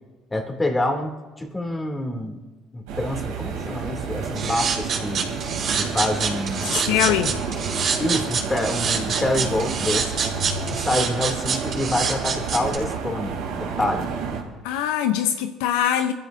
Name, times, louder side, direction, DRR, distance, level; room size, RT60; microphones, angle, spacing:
voice 1, 0.3-2.4 2.7-5.4 5.8-7.3 8.0-10.3 10.7-14.1, left 1 dB, 20° left, 2.7 m, -27 dB
sound 1, 2.9-14.4, right 5 dB, 85° right, 3.0 m, -30 dB
sound 2, 4.4-12.8, right 6 dB, 55° right, 4.7 m, -26 dB
voice 2, 6.6-7.3 14.6-16.1, left 10 dB, 85° left, 0.7 m, -22 dB
26.0 x 14.0 x 2.7 m
supercardioid pair, 65°, 0 cm